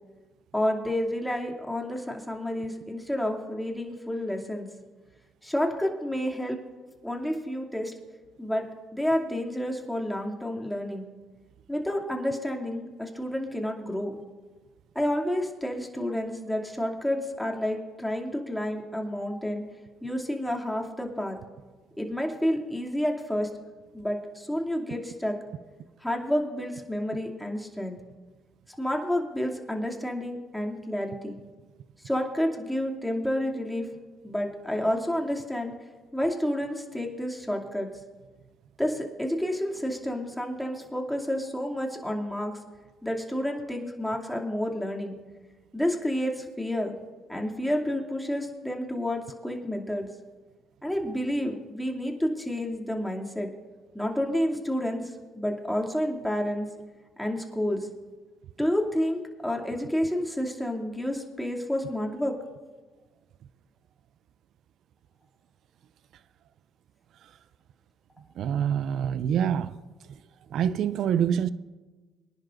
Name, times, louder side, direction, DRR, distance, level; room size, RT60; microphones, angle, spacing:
voice 1, 0.5-4.7 5.4-6.6 7.0-7.9 8.4-11.0 11.7-14.1 14.9-19.6 20.0-21.4 22.0-23.5 23.9-25.4 26.0-28.0 28.7-31.4 32.0-33.9 34.2-35.7 36.1-37.9 38.8-42.6 43.0-45.2 45.7-46.9 47.3-50.1 50.8-53.5 53.9-56.7 57.2-57.9 58.6-62.4, equal, 5° left, 2.6 m, -30 dB
voice 2, 68.4-69.8 70.5-71.5, right 9 dB, 65° right, 0.4 m, -26 dB
24.0 x 10.5 x 2.6 m
supercardioid pair, 60°, 0 cm